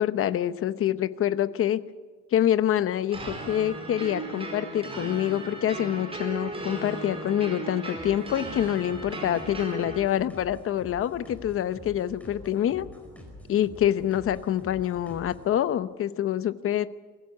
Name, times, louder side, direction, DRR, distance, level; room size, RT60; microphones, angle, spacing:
voice 1, 0.0-1.8 2.3-12.9 13.5-16.9, left 11 dB, 45° left, 14 dB, 0.9 m, -26 dB
sound 1, 3.1-10.0, right 2 dB, 15° right, 5.0 m, -36 dB
sound 2, 7.9-15.5, equal, 5° left, 4.8 m, -46 dB
23.5 x 15.5 x 9.5 m, 1.5 s
cardioid pair, 155°, 32 cm